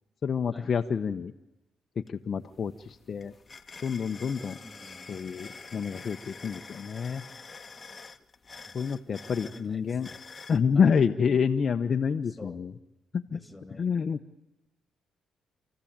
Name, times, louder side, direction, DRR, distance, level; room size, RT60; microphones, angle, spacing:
voice 1, 0.2-1.3 2.0-3.3 3.8-4.6 5.1-7.2 8.7-10.1 10.5-12.7 13.1-13.4 13.8-14.2, left 6 dB, 45° left, 6 dB, 1.0 m, -28 dB
sound 1, 2.1-2.2 2.5-10.6, left 4 dB, 30° left, 1.3 m, -47 dB
voice 2, 4.6-5.1 8.6-8.8 9.4-10.2 10.7-11.0 12.3-12.6 13.3-13.9, left 2 dB, 10° left, 8 dB, 3.2 m, -48 dB
28.0 x 15.5 x 8.8 m, 0.95 s
cardioid pair, 90°, 0 cm